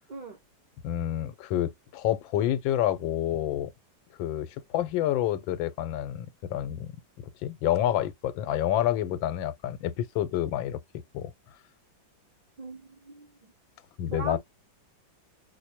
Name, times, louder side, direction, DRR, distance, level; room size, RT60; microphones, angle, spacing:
voice 1, 0.8-3.7 4.2-6.9 7.4-10.8 11.1-11.3 14.0-14.4, left 12 dB, 85° left, 1.3 m, -28 dB
voice 2, 12.6-13.5 14.1-14.4, right 3 dB, 50° right, 0.5 m, -40 dB
4.7 x 2.1 x 2.8 m
omnidirectional pair, 2.1 m